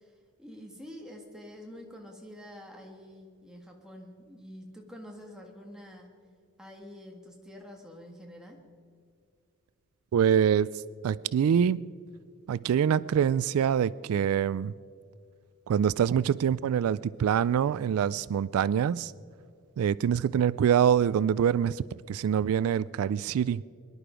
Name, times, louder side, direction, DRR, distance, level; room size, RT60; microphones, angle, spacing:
voice 1, 0.0-6.1 6.6-8.6, equal, 5° right, 0 dB, 1.7 m, -47 dB
voice 2, 10.1-10.7 11.0-11.9 12.5-14.7 15.7-19.1 19.8-23.6, right 8 dB, 80° right, 20 dB, 0.3 m, -25 dB
23.0 x 11.0 x 5.0 m, 2.2 s
head